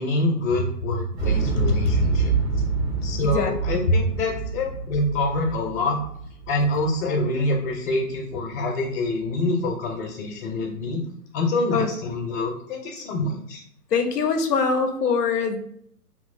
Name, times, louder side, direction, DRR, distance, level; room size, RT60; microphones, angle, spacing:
voice 1, 0.0-2.3 3.0-6.0 6.5-11.0 11.3-13.6, left 2 dB, 50° left, 0 dB, 0.8 m, -26 dB
Explosion, 1.1-7.2 7.5-7.6, right 4 dB, 70° right, 1.4 m, -26 dB
voice 2, 3.2-4.0 11.7-11.9 13.9-15.6, left 4 dB, 85° left, 5 dB, 0.7 m, -23 dB
3.1 x 3.0 x 2.6 m, 0.68 s
hypercardioid pair, 135°, 46 cm